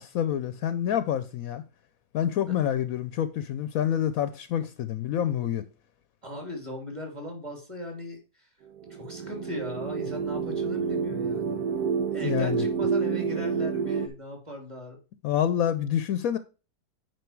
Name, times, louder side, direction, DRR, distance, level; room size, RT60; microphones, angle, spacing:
voice 1, 0.0-1.6 2.1-5.7 12.2-12.7 15.2-16.4, left 10 dB, 75° left, 1.0 m, -27 dB
voice 2, 6.2-8.5 9.0-11.6 12.1-15.0, left 1 dB, 20° right, 3.0 m, -38 dB
sound 1, 8.8-14.1, right 6 dB, 85° right, 1.4 m, -29 dB
9.3 x 4.9 x 4.6 m
omnidirectional pair, 1.6 m